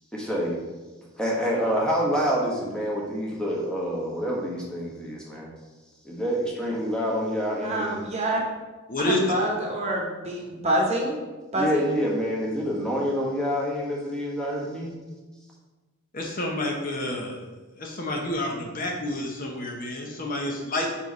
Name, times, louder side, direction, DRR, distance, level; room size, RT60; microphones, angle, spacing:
voice 1, 0.1-0.6 1.2-5.5 6.0-7.9 11.6-15.0, equal, 5° left, -3 dB, 1.1 m, -27 dB
voice 2, 7.6-8.4 9.0-11.2 11.5-11.9, right 1 dB, 30° right, -1 dB, 1.1 m, -26 dB
voice 3, 8.9-9.2 16.1-17.4 17.8-20.9, left 1 dB, 40° left, 1 dB, 0.8 m, -29 dB
4.6 x 4.5 x 5.3 m, 1.2 s
head